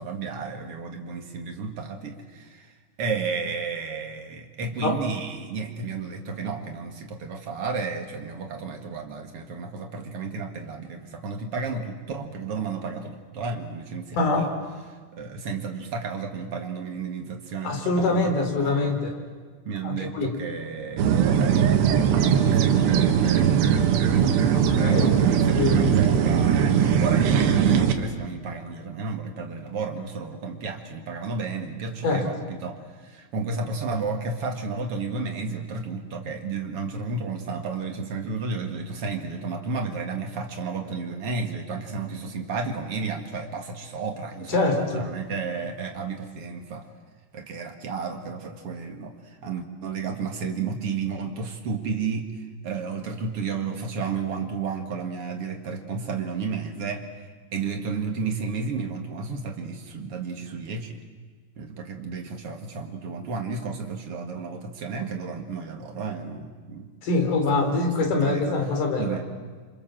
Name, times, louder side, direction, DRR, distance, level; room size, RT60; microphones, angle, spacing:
voice 1, 0.0-14.5 15.2-18.9 19.6-46.9 47.3-52.3 52.6-57.3 57.5-61.0 61.6-66.9 67.6-68.6 69.0-69.2, right 4 dB, 45° right, 4 dB, 2.0 m, -32 dB
voice 2, 14.1-14.5 17.6-19.1 19.8-20.3 24.5-25.2 25.5-25.9 32.0-32.2 44.5-45.0 67.0-69.2, left 3 dB, 50° left, 4 dB, 4.7 m, -24 dB
sound 1, 21.0-27.9, right 8 dB, 70° right, 3.6 m, -20 dB
27.5 x 27.0 x 7.6 m, 1.5 s
omnidirectional pair, 5.2 m